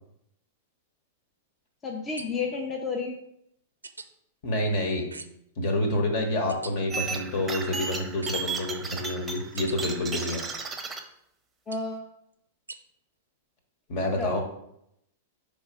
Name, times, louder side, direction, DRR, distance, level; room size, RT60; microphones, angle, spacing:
voice 1, 1.8-3.1 11.7-12.1 14.0-14.4, left 4 dB, 20° left, 1 dB, 0.8 m, -31 dB
sound 1, 2.2-2.6 3.8-4.1 5.1-5.5 6.5-6.7 8.2-8.6 9.6-9.8 11.7-12.0 12.7-12.8, right 3 dB, 85° right, 0.4 m, -43 dB
voice 2, 4.4-5.1 5.6-10.4 13.9-14.4, left 1 dB, 50° left, 3 dB, 1.5 m, -28 dB
sound 2, 6.9-11.0, right 4 dB, 10° right, 0.8 m, -34 dB
4.9 x 3.6 x 5.3 m, 0.77 s
figure-of-eight pair, 100°, 0 cm